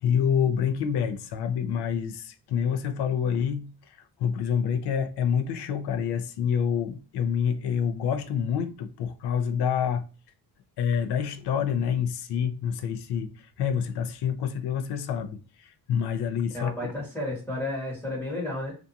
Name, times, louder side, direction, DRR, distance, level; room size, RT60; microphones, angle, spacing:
voice 1, 0.0-10.0 10.8-16.9, left 7 dB, 80° left, 0.5 m, -27 dB
voice 2, 16.5-18.7, left 1 dB, 5° left, 0.9 m, -32 dB
2.5 x 2.3 x 2.6 m
cardioid pair, 160°, 39 cm